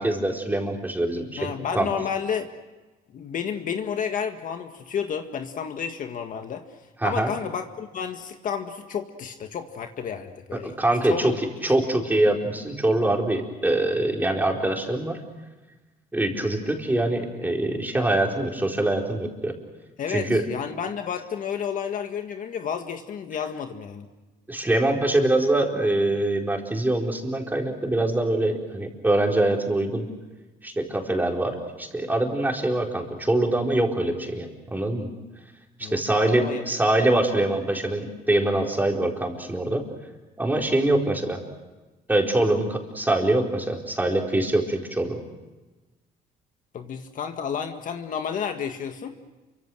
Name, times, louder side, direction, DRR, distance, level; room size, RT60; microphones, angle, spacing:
voice 1, 0.0-1.9 7.0-7.3 10.6-11.3 11.6-15.2 16.1-19.5 20.1-20.4 24.5-30.1 30.6-35.1 35.8-39.8 40.4-41.4 42.1-45.2, right 1 dB, 10° right, 1 dB, 4.5 m, -24 dB
voice 2, 1.4-2.5 3.1-6.6 7.0-10.8 11.1-11.3 11.7-11.8 20.0-24.1 35.8-36.6 40.8-41.1 46.7-49.1, left 7 dB, 50° left, 6 dB, 1.8 m, -31 dB
29.0 x 25.0 x 6.4 m, 1.2 s
cardioid pair, 110°, 17 cm